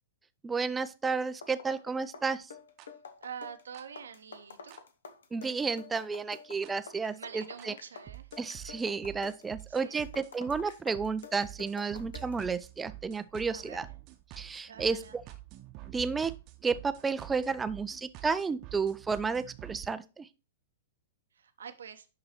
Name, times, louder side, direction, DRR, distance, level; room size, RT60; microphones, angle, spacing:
voice 1, 0.4-2.5 5.3-7.7 8.4-13.9 14.4-15.2 15.9-16.3 16.6-20.3, right 5 dB, 10° right, 0.5 m, -32 dB
sound 1, 0.9-12.4, left 5 dB, 65° left, 0.7 m, -49 dB
sound 2, 2.8-2.9 3.7-3.8 4.7-4.8 5.7-5.8 6.6-6.7 7.6-7.7 8.1-19.9, right 17 dB, 35° right, 0.9 m, -48 dB
voice 2, 3.2-4.8 7.1-8.3 9.7-10.0 13.5-13.9 14.7-15.2 21.3-22.1, right 7 dB, 65° right, 0.8 m, -46 dB
11.0 x 3.9 x 3.0 m
figure-of-eight pair, 100°, 0 cm